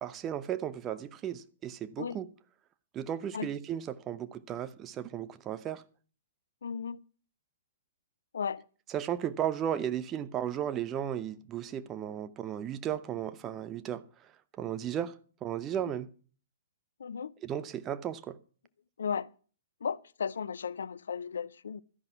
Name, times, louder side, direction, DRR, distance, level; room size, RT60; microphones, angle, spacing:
voice 1, 0.0-2.3 2.9-5.8 8.9-14.0 14.6-15.1 15.4-16.1 17.4-18.4, right 10 dB, 25° right, 0.8 m, -35 dB
voice 2, 6.6-7.0 8.3-8.6 15.8-15.9 17.0-17.3 19.0-19.3 19.8-21.8, left 6 dB, 65° left, 0.5 m, -35 dB
12.5 x 10.5 x 5.7 m
figure-of-eight pair, 115°, 0 cm